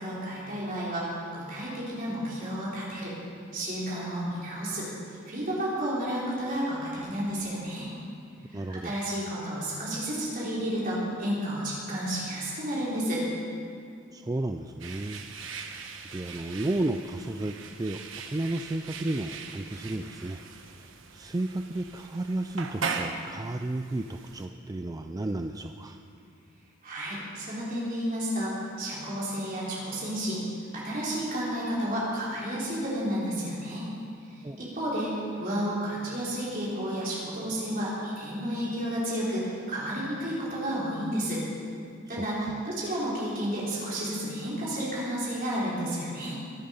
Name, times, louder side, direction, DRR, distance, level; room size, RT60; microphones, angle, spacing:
voice 1, 0.0-3.2 3.5-4.9 5.3-7.9 8.5-13.2 26.8-30.4 30.7-33.9 34.6-41.4 42.1-46.4, equal, 45° right, -7 dB, 3.6 m, -31 dB
voice 2, 8.5-9.0 14.1-26.0 34.4-34.6 42.1-42.7, right 2 dB, 20° right, 6 dB, 0.4 m, -33 dB
sound 1, 14.8-24.5, right 5 dB, 70° right, 1.2 m, -40 dB
23.5 x 8.9 x 5.6 m, 2.4 s
head